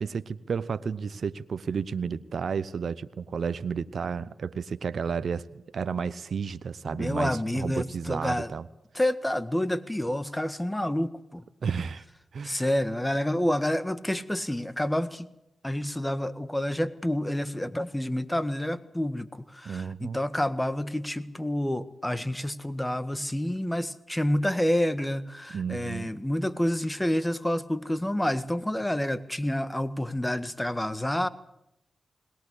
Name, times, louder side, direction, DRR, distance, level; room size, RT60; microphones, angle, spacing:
voice 1, 0.0-8.7 11.6-12.0 12.3-12.6 19.6-20.2 25.5-26.1, right 6 dB, 65° right, 15 dB, 0.7 m, -32 dB
voice 2, 6.9-8.5 8.9-11.4 12.4-15.3 15.6-31.3, left 1 dB, 10° left, 13 dB, 1.7 m, -28 dB
21.5 x 19.0 x 8.3 m, 0.85 s
supercardioid pair, 45°, 0 cm